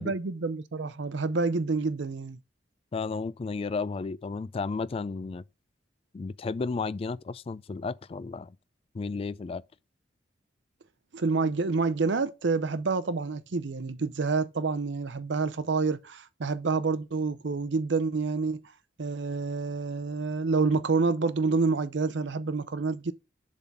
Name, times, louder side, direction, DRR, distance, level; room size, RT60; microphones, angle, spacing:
voice 1, 0.0-2.4 11.1-18.6 19.0-23.1, right 4 dB, 75° right, 0.6 m, -28 dB
voice 2, 2.9-5.4 6.1-8.6 8.9-9.6, left 4 dB, 30° left, 0.3 m, -33 dB
7.2 x 3.8 x 5.7 m
head